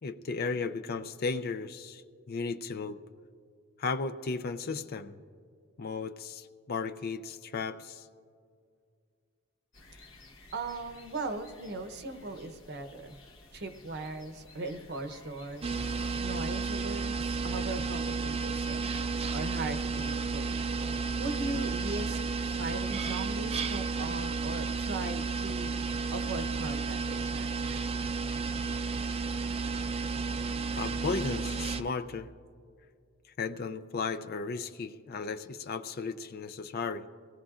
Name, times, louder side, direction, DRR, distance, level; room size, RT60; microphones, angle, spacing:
voice 1, 0.0-2.0 2.3-3.0 3.8-5.2 5.8-8.0 30.7-32.3 33.4-37.1, left 4 dB, 50° left, 10 dB, 0.5 m, -35 dB
sound 1, 9.7-16.2, left 2 dB, 70° left, 1.2 m, -54 dB
voice 2, 10.5-13.2 13.5-15.8 16.2-20.6 21.2-22.2 22.6-25.7 26.1-27.7, right 2 dB, 55° right, 8 dB, 0.8 m, -39 dB
sound 2, 15.6-31.8, right 4 dB, 30° right, 0.5 m, -32 dB
23.5 x 18.0 x 2.5 m, 2.2 s
head